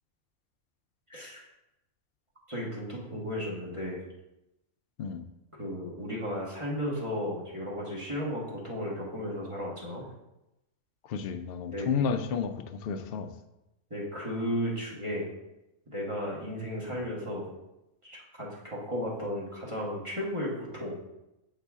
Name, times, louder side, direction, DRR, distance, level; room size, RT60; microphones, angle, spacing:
voice 1, 1.1-1.4 2.5-4.0 5.6-10.0 11.7-11.9 13.9-15.2 15.9-17.5 18.0-21.0, equal, 25° right, -5 dB, 1.3 m, -34 dB
voice 2, 11.1-13.3 16.9-17.0, left 6 dB, 60° left, 7 dB, 0.6 m, -31 dB
7.4 x 4.1 x 3.5 m, 0.92 s
omnidirectional pair, 1.3 m